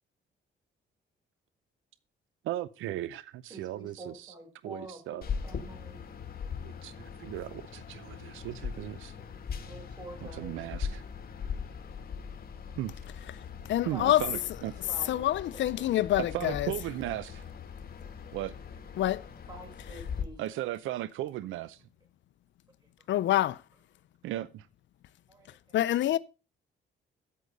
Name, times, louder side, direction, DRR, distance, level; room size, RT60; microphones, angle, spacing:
voice 1, 2.4-4.3 4.6-5.3 6.6-6.9 7.2-9.1 10.2-11.0 12.7-12.9 13.9-14.7 16.3-17.4 18.3-18.5 20.4-21.8 24.2-24.7, right 14 dB, 85° right, 0.6 m, -36 dB
voice 2, 3.5-6.0 9.6-10.7 13.9-14.4 14.9-15.9 16.2-16.6 19.5-20.4 25.3-26.0, right 1 dB, 20° right, 6.8 m, -47 dB
sound 1, 5.2-20.2, left 6 dB, 50° left, 2.1 m, -40 dB
voice 3, 13.7-14.3 15.1-16.7 19.0-19.2 23.1-23.6 25.7-26.2, left 13 dB, 70° left, 0.6 m, -26 dB
9.6 x 8.3 x 5.3 m
cardioid pair, 90°, 20 cm